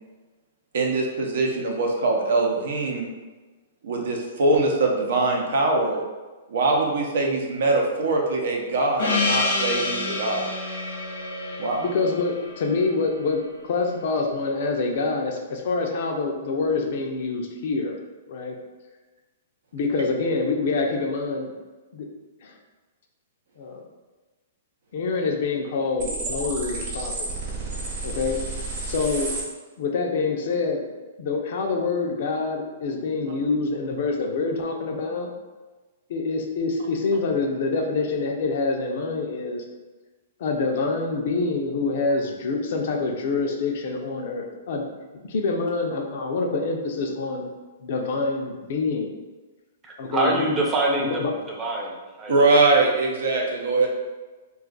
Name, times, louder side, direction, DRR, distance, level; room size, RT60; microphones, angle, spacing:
voice 1, 0.7-3.1 3.8-6.0 6.5-10.5 11.6-11.8 52.3-53.9, right 3 dB, 75° right, 0 dB, 0.6 m, -22 dB
Gong, 9.0-13.8, left 3 dB, 80° left, 1.0 m, -28 dB
voice 2, 11.4-18.0 18.3-18.6 19.7-21.5 21.9-22.1 22.4-22.5 23.6-23.8 24.9-27.3 28.0-28.4 28.9-29.3 29.8-30.8 31.2-35.3 36.1-39.6 40.4-44.8 45.3-47.4 47.8-49.1 50.0-50.5 51.0-51.3, left 3 dB, 60° left, 2 dB, 0.5 m, -26 dB
sound 1, 26.0-29.4, right 2 dB, 35° right, 1.0 m, -31 dB
voice 3, 49.8-51.1 51.6-52.5, right 2 dB, 20° right, -1 dB, 0.6 m, -25 dB
2.5 x 2.4 x 3.8 m, 1.3 s
hypercardioid pair, 145°, 0 cm